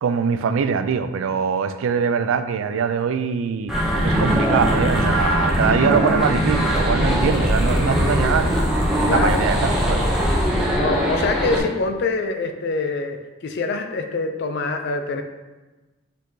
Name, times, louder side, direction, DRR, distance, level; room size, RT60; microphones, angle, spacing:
voice 1, 0.0-3.7 4.0-8.6 9.1-10.0, right 6 dB, 65° right, 10 dB, 0.3 m, -22 dB
sound 1, 3.7-11.6, equal, ahead, 0.6 m, -20 dB
voice 2, 9.1-9.8 10.7-15.2, left 3 dB, 50° left, 6 dB, 0.4 m, -25 dB
4.6 x 4.2 x 2.7 m, 1.2 s
head